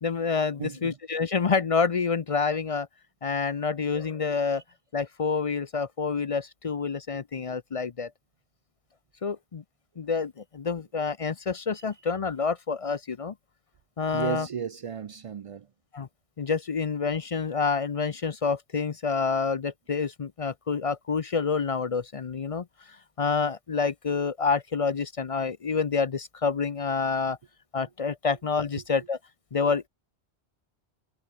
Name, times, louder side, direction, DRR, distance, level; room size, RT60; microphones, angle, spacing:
voice 1, 0.0-2.9 3.2-4.6 4.9-8.1 9.2-9.6 10.0-13.3 14.0-14.5 15.9-16.1 16.4-27.4 27.7-29.2 29.5-29.9, left 5 dB, 40° left, 0.6 m, -28 dB
voice 2, 0.6-1.0 14.1-15.7, right 7 dB, 60° right, 0.3 m, -34 dB
omnidirectional pair, 1.1 m